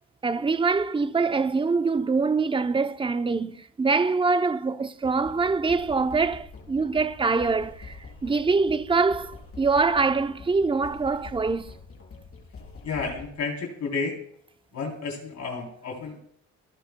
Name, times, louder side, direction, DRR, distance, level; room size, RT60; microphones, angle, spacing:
voice 1, 0.2-11.7, right 4 dB, 15° right, 0.7 m, -24 dB
sound 1, 5.0-13.3, left 4 dB, 45° left, 3.9 m, -45 dB
voice 2, 12.8-14.2 14.7-16.2, left 4 dB, 65° left, 3.6 m, -31 dB
28.5 x 10.5 x 2.3 m
cardioid pair, 90°, 30 cm